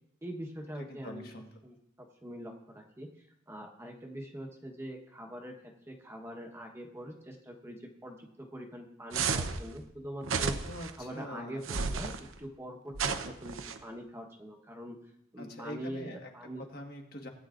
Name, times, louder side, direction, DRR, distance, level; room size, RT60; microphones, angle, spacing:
voice 1, 0.2-1.3 1.6-10.5 11.0-15.0 15.3-16.6, equal, 10° right, 1 dB, 1.1 m, -44 dB
voice 2, 0.8-1.5 10.6-11.6 15.4-16.3 16.6-17.3, left 1 dB, 50° left, 2 dB, 1.6 m, -44 dB
sound 1, 9.1-9.6 10.2-10.9 11.6-12.2 12.9-13.8, right 5 dB, 80° right, 0.8 m, -32 dB
19.0 x 9.5 x 2.5 m, 0.77 s
head